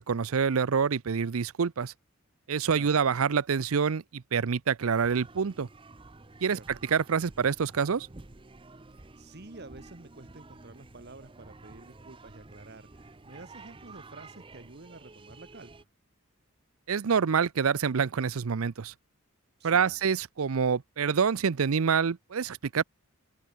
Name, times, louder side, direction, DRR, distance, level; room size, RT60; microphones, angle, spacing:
voice 1, 0.0-1.9 2.5-5.7 6.4-6.6 6.9-8.1 16.9-18.9 19.6-22.8, right 6 dB, 75° right, 0.6 m, -26 dB
sound 1, 4.9-15.8, right 3 dB, 25° right, 0.7 m, -51 dB
voice 2, 9.2-15.9 19.6-20.0, right 2 dB, 50° right, 1.5 m, -49 dB
open air
head